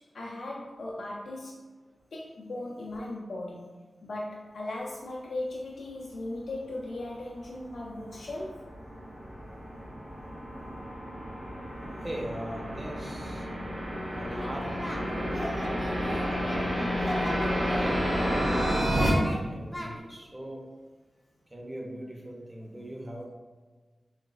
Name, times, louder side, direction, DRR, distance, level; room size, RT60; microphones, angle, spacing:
voice 1, 0.1-1.6 2.1-3.7 4.0-8.6, left 2 dB, 80° left, -5 dB, 0.4 m, -37 dB
sound 1, 7.6-19.1, equal, 85° right, 1.3 m, -31 dB
voice 2, 12.0-13.5 14.1-16.9 17.5-20.6 21.5-23.2, right 1 dB, 25° right, -1 dB, 0.8 m, -40 dB
Singing, 14.3-15.0 15.3-16.7 17.0-18.3 18.7-19.4 19.7-19.9, equal, 5° left, 0.6 m, -36 dB
3.8 x 2.8 x 2.4 m, 1.3 s
cardioid pair, 50°, 0 cm